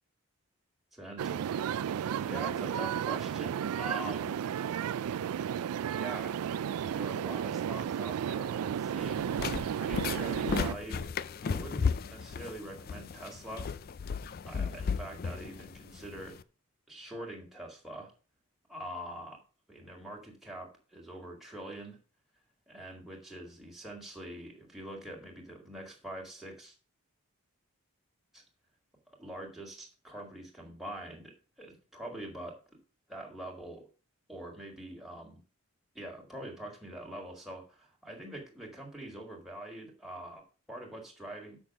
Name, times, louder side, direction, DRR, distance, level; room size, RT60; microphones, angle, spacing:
voice 1, 0.9-1.5 1.8-4.4 5.9-9.4 9.7-11.1 11.4-13.7 14.5-16.4 16.9-18.1 18.7-19.4 19.7-22.0 22.7-26.7 28.3-28.4 29.1-32.6 33.1-33.9 34.3-35.4 35.9-41.6, right 1 dB, ahead, -1 dB, 2.0 m, -44 dB
sound 1, 1.2-10.7, right 8 dB, 80° right, 0.3 m, -33 dB
sound 2, 9.0-16.4, left 5 dB, 40° left, 0.3 m, -35 dB
6.9 x 6.1 x 5.9 m, 0.36 s
head